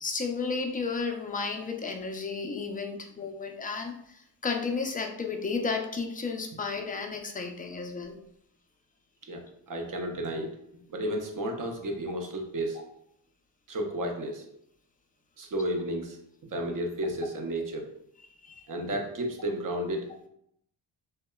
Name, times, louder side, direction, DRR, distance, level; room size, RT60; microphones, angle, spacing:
voice 1, 0.0-8.2 18.4-18.6, left 4 dB, 20° left, 3 dB, 0.4 m, -33 dB
voice 2, 9.2-10.6 10.9-12.9 13.7-14.5 15.4-16.2 16.5-17.9 18.7-20.1, right 1 dB, 45° right, 3 dB, 0.6 m, -32 dB
2.8 x 2.2 x 2.2 m, 0.72 s
cardioid pair, 55°, 46 cm